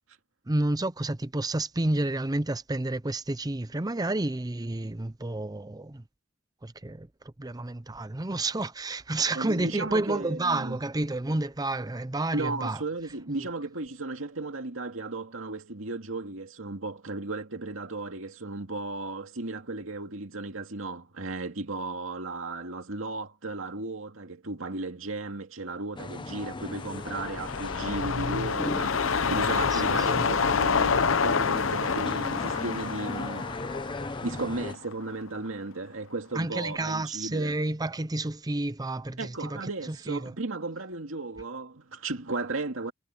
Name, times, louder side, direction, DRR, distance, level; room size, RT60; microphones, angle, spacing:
voice 1, 0.5-6.0 6.6-7.1 7.4-12.8 13.3-13.4 29.5-30.3 36.3-39.6 39.9-40.3, right 2 dB, 20° right, 0.7 m, -30 dB
voice 2, 9.3-10.8 12.3-33.5 34.0-37.5 39.2-42.9, right 2 dB, 80° right, 2.3 m, -35 dB
sound 1, 26.0-34.7, left 2 dB, 25° left, 0.9 m, -38 dB
sound 2, 26.6-35.1 35.5-35.6, left 5 dB, 75° left, 0.8 m, -28 dB
head